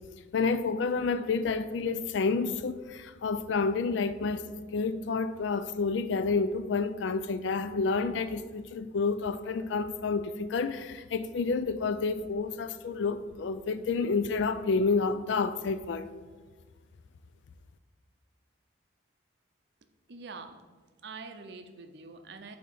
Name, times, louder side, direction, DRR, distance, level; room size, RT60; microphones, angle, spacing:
voice 1, 0.3-4.4 4.7-16.1, left 4 dB, 75° left, 0.4 m, -29 dB
voice 2, 20.1-20.6 21.0-22.6, right 4 dB, 60° right, 0.5 m, -44 dB
7.4 x 2.8 x 5.4 m
head